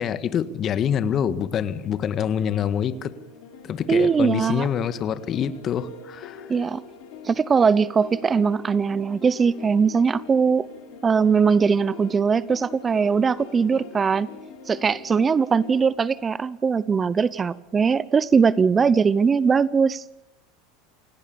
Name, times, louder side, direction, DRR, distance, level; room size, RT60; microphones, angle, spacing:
voice 1, 0.0-3.1 3.6-6.5, left 8 dB, 40° left, 14 dB, 1.7 m, -26 dB
sound 1, 1.7-15.8, left 5 dB, 65° left, 4.6 m, -43 dB
voice 2, 3.9-4.7 6.5-6.8 7.2-10.7 11.0-14.3 14.7-20.0, right 5 dB, 25° right, 20 dB, 0.8 m, -20 dB
28.5 x 17.5 x 7.1 m, 0.79 s
hypercardioid pair, 95°, 0 cm